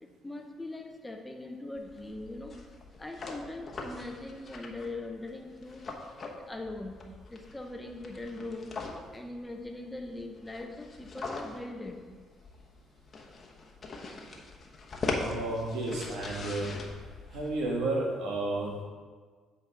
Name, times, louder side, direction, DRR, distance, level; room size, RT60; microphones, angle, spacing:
voice 1, 0.0-2.6 2.9-5.8 6.3-7.0 7.3-8.8 9.1-12.0, left 2 dB, 15° left, 3 dB, 0.8 m, -41 dB
sound 1, 1.8-17.8, left 3 dB, 40° left, 1.0 m, -41 dB
voice 2, 15.2-16.7 17.3-18.8, right 2 dB, 80° right, -2 dB, 1.7 m, -32 dB
8.0 x 4.1 x 4.7 m, 1.5 s
supercardioid pair, 80°, 0 cm